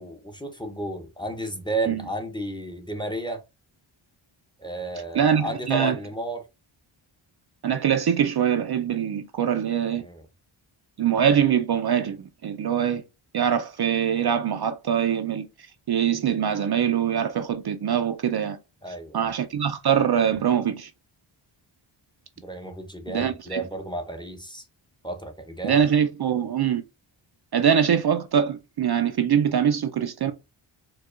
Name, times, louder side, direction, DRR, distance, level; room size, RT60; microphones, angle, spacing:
voice 1, 0.0-3.4 4.6-6.4 10.0-10.2 18.8-19.3 22.4-24.6 25.0-25.8, right 1 dB, 10° left, 0.7 m, -32 dB
voice 2, 5.1-5.9 7.6-10.0 11.0-12.2 12.4-13.0 13.3-15.4 15.9-18.6 19.1-20.9 23.1-23.6 25.6-26.8 27.5-30.3, right 8 dB, 50° right, 0.5 m, -23 dB
4.5 x 2.3 x 2.4 m
cardioid pair, 65°, 50 cm